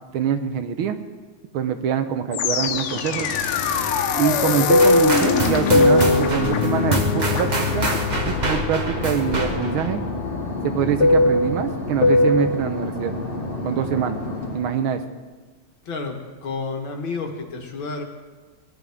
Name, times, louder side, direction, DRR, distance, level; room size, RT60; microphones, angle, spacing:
voice 1, 0.1-1.0 1.5-3.3 4.1-7.9 8.3-10.0 10.6-13.1 13.6-14.2 14.5-15.0, right 8 dB, 75° right, 8 dB, 1.5 m, -24 dB
sound 1, 2.3-11.5, left 7 dB, 80° left, 1.7 m, -25 dB
Fixed-wing aircraft airplane, 3.1-8.5 8.8-14.6, left 1 dB, 30° left, 1.5 m, -22 dB
sound 2, 4.8-9.9, right 2 dB, 35° right, 0.7 m, -27 dB
voice 2, 16.4-18.0, left 4 dB, 65° left, 2 dB, 2.2 m, -30 dB
19.0 x 10.5 x 3.6 m, 1.3 s
omnidirectional pair, 2.4 m